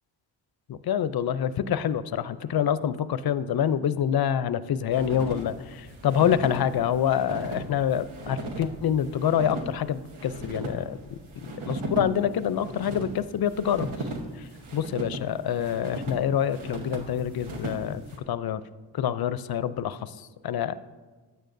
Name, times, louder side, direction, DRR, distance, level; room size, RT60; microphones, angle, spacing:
voice 1, 0.7-11.2 11.7-13.9 14.4-14.5 14.7-18.6 18.9-20.8, left 9 dB, 50° left, 15 dB, 0.5 m, -26 dB
sound 1, 4.9-18.2, right 2 dB, 85° right, 1.2 m, -37 dB
12.0 x 9.0 x 2.6 m, 1.3 s
supercardioid pair, 45°, 47 cm